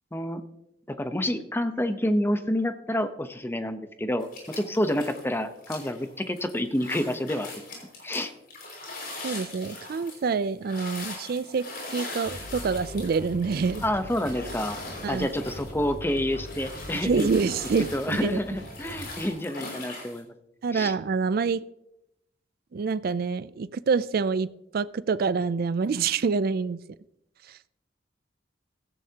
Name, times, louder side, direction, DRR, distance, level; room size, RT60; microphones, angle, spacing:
voice 1, 0.1-0.4 0.9-4.3 4.6-7.5 8.0-8.3 13.8-14.8 15.1-17.3 17.9-20.3 20.7-20.9, left 1 dB, 15° left, 9 dB, 0.8 m, -28 dB
sound 1, 4.2-5.3 5.6-20.2, left 2 dB, 55° left, 5.7 m, -41 dB
voice 2, 9.2-13.8 15.0-15.3 17.0-18.4 20.6-21.6 22.7-24.5 24.7-26.8, right 5 dB, 55° right, 16 dB, 0.4 m, -26 dB
sound 2, 12.2-19.1, equal, 80° left, 4.5 m, -41 dB
16.0 x 14.0 x 2.9 m, 0.84 s
head